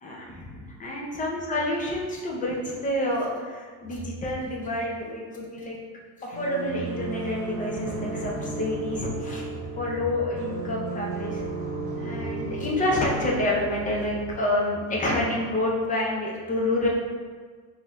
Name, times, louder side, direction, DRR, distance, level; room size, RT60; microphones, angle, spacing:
voice 1, 0.0-5.8 6.2-9.5 9.8-11.4 11.9-16.9, left 1 dB, 20° left, -2 dB, 0.5 m, -28 dB
sound 1, 6.3-14.3, right 3 dB, 65° right, 1.1 m, -34 dB
3.7 x 2.7 x 3.5 m, 1.5 s
cardioid pair, 150°, 40 cm